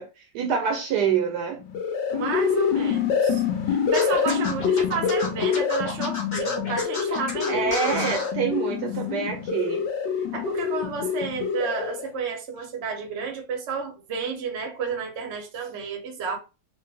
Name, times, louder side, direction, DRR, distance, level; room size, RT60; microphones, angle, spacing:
voice 1, 0.0-1.6 7.5-9.9, right 7 dB, 70° right, 1.1 m, -26 dB
sound 1, 1.6-12.1, left 7 dB, 85° left, 1.4 m, -26 dB
voice 2, 2.1-8.0 10.3-16.4, right 5 dB, 50° right, 0.9 m, -31 dB
Scratching (performance technique), 3.9-8.3, left 3 dB, 45° left, 0.6 m, -32 dB
3.3 x 2.5 x 3.4 m
omnidirectional pair, 2.0 m